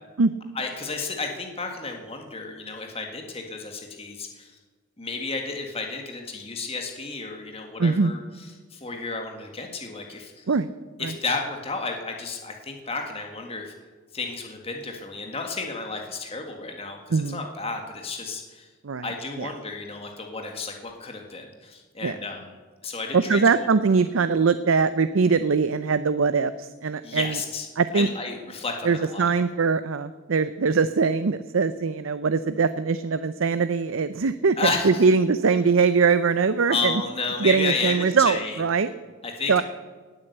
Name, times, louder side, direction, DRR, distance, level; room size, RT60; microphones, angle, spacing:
voice 1, 0.5-4.5 5.0-10.4 11.0-13.7 14.1-18.7 19.0-22.5 22.8-23.7 27.0-27.7 27.9-29.3 34.6-35.1 36.7-38.6 39.2-39.6, left 4 dB, 25° left, 3 dB, 1.8 m, -32 dB
voice 2, 7.8-8.1 10.5-10.7 17.1-17.4 18.8-19.0 19.4-19.5 22.0-22.1 23.1-27.4 27.8-28.1 28.8-34.6 34.8-36.9 37.4-38.9 39.5-39.6, right 5 dB, 70° right, 12 dB, 0.6 m, -22 dB
18.5 x 8.8 x 8.0 m, 1.4 s
head